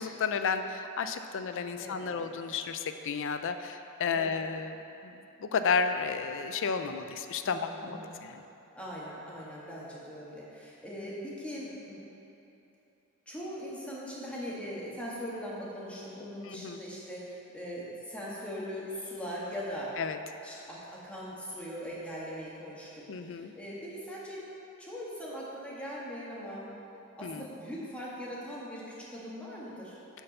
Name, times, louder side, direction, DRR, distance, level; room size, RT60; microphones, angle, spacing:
voice 1, 0.0-4.8 5.0-7.9 8.2-8.4 16.4-16.8 20.0-20.2 23.1-23.5 27.2-27.4, left 5 dB, 60° left, 8 dB, 0.5 m, -32 dB
voice 2, 1.8-2.4 4.1-4.5 7.4-8.1 8.7-12.0 13.3-19.9 20.4-24.4 24.8-26.7 27.2-29.9, equal, 5° left, -6 dB, 1.6 m, -40 dB
8.8 x 4.6 x 6.6 m, 2.9 s
head